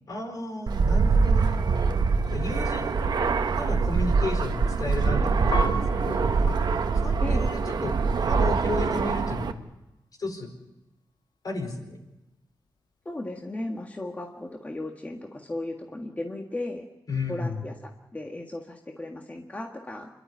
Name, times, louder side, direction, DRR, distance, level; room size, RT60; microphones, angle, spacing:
voice 1, 0.1-1.6 2.3-3.2 3.6-6.6 6.9-9.6 10.2-10.5 11.4-12.0 17.1-17.6, left 2 dB, 55° left, 3 dB, 4.7 m, -33 dB
Fixed-wing aircraft airplane, 0.7-9.5, right 4 dB, 65° right, 1.3 m, -24 dB
Piano, 5.5-8.3 8.9-9.6, left 3 dB, 85° left, 3.3 m, -38 dB
voice 2, 13.0-16.8 17.3-20.1, left 2 dB, 20° left, 1 dB, 1.7 m, -36 dB
28.5 x 12.5 x 9.7 m, 0.97 s
wide cardioid pair, 130°, 8 cm